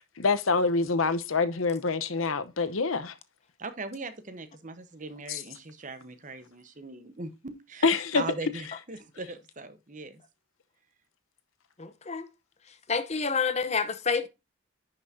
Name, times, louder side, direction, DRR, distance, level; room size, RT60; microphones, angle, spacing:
voice 1, 0.2-3.1 5.3-5.4 7.8-8.2, left 4 dB, 80° left, 0.9 m, -26 dB
voice 2, 3.6-7.9 8.1-10.2, right 3 dB, 40° right, 1.0 m, -40 dB
voice 3, 11.8-12.3 12.9-14.3, left 5 dB, 30° left, 0.8 m, -28 dB
10.5 x 5.9 x 2.7 m
head